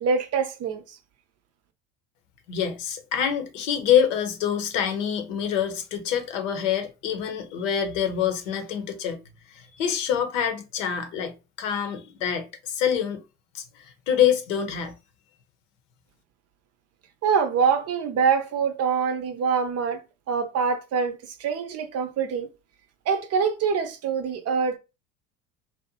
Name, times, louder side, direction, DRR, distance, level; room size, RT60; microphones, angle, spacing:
voice 1, 0.0-1.0 17.2-20.0 20.3-22.5 23.1-24.8, right 6 dB, 40° right, 0.6 m, -25 dB
voice 2, 2.5-9.2 9.5-13.2 13.5-14.9, left 8 dB, 85° left, 0.7 m, -26 dB
2.6 x 2.1 x 2.7 m
supercardioid pair, 85°, 37 cm